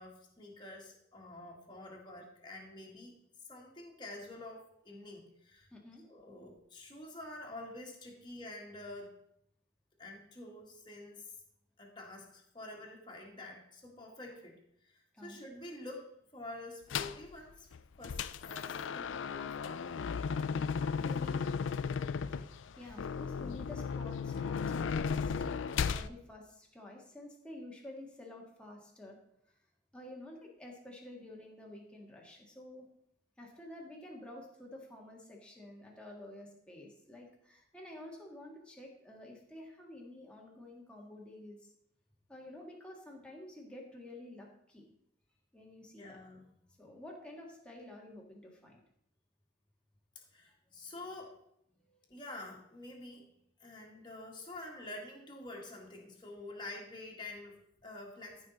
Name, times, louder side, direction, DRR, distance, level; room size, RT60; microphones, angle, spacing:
voice 1, 0.0-3.2 3.5-5.7 6.0-9.2 10.0-11.3 11.8-14.6 14.8-17.7 18.0-20.1 21.0-21.2 22.8-23.0 46.0-46.5 50.2-51.4 52.1-53.3 53.6-58.5, left 2 dB, 25° left, -1 dB, 1.9 m, -48 dB
voice 2, 5.7-6.0 15.1-15.4 21.0-21.5 22.4-22.5 22.8-25.3 25.9-29.2 29.9-32.9 33.4-41.7 42.3-44.9 45.5-46.2 46.8-48.8 51.9-52.0, left 1 dB, 5° left, -1 dB, 1.7 m, -50 dB
sound 1, 16.9-17.2 17.7-26.1, left 6 dB, 85° left, 0.4 m, -35 dB
14.0 x 5.6 x 4.2 m, 0.73 s
head